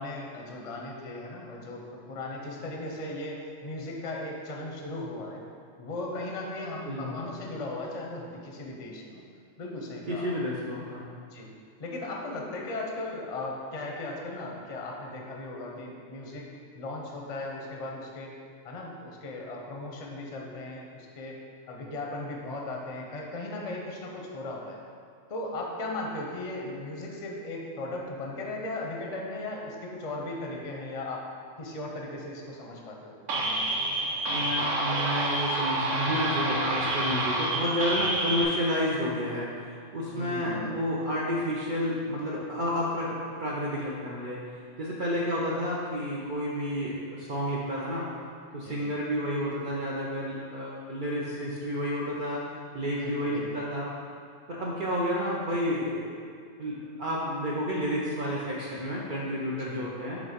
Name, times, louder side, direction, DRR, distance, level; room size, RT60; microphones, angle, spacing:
voice 1, 0.0-5.4 5.8-9.2 9.6-10.3 11.3-11.5 11.8-16.4 16.7-18.3 18.6-21.4 21.7-24.8 25.3-31.3 31.6-33.8 40.1-40.8 48.6-49.0 53.0-53.6 59.6-59.9, left 2 dB, 35° left, -1 dB, 0.7 m, -37 dB
voice 2, 6.9-7.2 10.1-11.0 34.3-44.4 44.8-48.1 48.5-52.5 52.7-53.9 54.5-56.2 56.6-60.2, equal, 50° right, -5 dB, 0.7 m, -30 dB
sound 1, 33.3-38.4, right 1 dB, 85° right, 1.2 m, -28 dB
5.1 x 3.6 x 5.0 m, 2.2 s
omnidirectional pair, 1.3 m